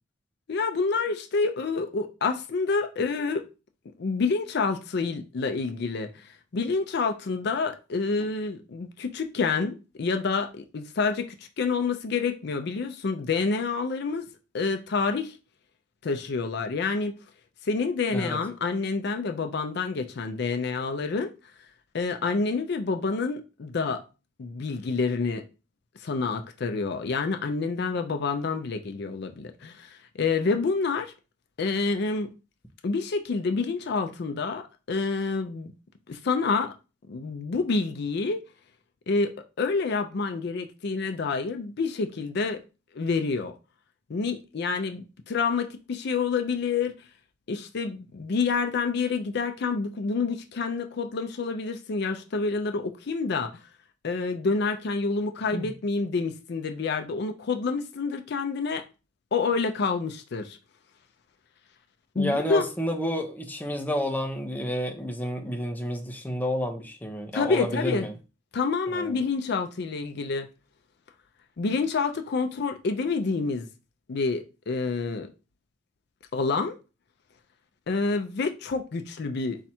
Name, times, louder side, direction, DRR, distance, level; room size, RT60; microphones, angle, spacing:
voice 1, 0.5-3.5 4.0-14.2 14.5-15.4 16.0-17.2 17.6-21.3 21.9-24.0 24.4-25.4 26.0-31.1 31.6-32.3 32.8-35.7 36.1-36.7 37.1-38.4 39.1-42.6 42.9-43.5 44.1-46.9 47.5-53.5 54.0-58.8 59.3-60.6 62.2-62.6 67.3-68.1 68.5-70.5 71.6-73.7 74.1-75.3 76.3-76.7 77.9-79.6, left 4 dB, 55° left, 0.4 m, -28 dB
voice 2, 62.1-68.1 68.9-69.2, equal, 10° left, 0.6 m, -30 dB
4.2 x 2.4 x 4.2 m
head